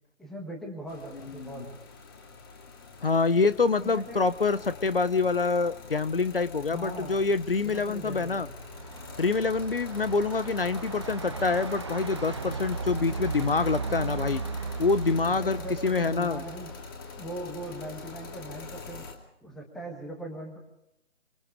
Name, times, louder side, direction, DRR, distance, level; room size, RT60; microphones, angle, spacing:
voice 1, 0.2-1.8 3.8-4.3 6.6-7.3 7.6-8.5 15.2-16.7 17.2-19.1 19.4-20.6, right 1 dB, ahead, 1 dB, 1.2 m, -40 dB
sound 1, 0.9-19.1, left 4 dB, 20° left, 2.7 m, -44 dB
voice 2, 3.0-8.5 9.2-14.4 14.8-16.4, left 4 dB, 50° left, 14 dB, 1.0 m, -26 dB
Truck, 7.6-17.0, right 4 dB, 20° right, 0.9 m, -37 dB
25.5 x 24.5 x 5.0 m, 0.83 s
figure-of-eight pair, 150°, 38 cm